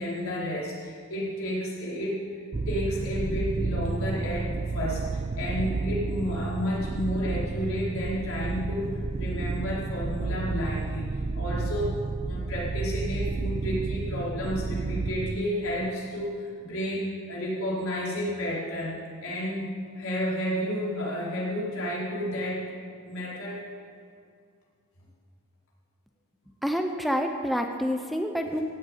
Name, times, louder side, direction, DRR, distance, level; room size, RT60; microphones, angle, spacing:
voice 1, 0.0-2.4 2.7-11.9 12.2-19.7 19.9-22.6 23.0-23.7, equal, 75° left, -6 dB, 4.8 m, -31 dB
sound 1, 2.5-15.4, right 3 dB, 30° right, 0.4 m, -31 dB
voice 2, 26.6-28.6, equal, ahead, 4 dB, 0.7 m, -28 dB
16.5 x 8.0 x 9.1 m, 2.2 s
head